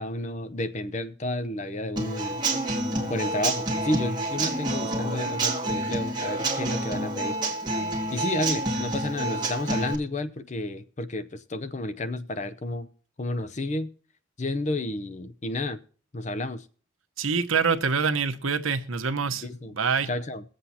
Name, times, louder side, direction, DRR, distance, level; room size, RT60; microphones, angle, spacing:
voice 1, 0.0-2.4 3.1-7.4 8.1-12.9 13.2-13.9 14.4-15.8 16.1-16.7 19.4-19.7 20.1-20.4, left 1 dB, 35° left, 0.6 m, -31 dB
Human voice / Acoustic guitar / Drum, 2.0-9.9, right 2 dB, 20° right, 1.9 m, -28 dB
voice 2, 17.2-19.4 19.7-20.1, right 5 dB, 80° right, 1.0 m, -25 dB
22.5 x 7.8 x 2.8 m
head